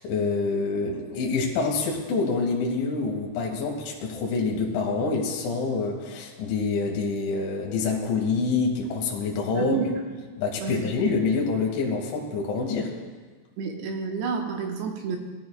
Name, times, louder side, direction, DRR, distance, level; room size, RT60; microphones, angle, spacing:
voice 1, 0.0-9.8 10.4-12.9, left 4 dB, 70° left, -1 dB, 3.9 m, -26 dB
voice 2, 9.5-9.9 10.6-10.8 13.6-15.2, right 5 dB, 70° right, 1 dB, 2.9 m, -29 dB
19.0 x 14.0 x 2.3 m, 1.4 s
omnidirectional pair, 5.7 m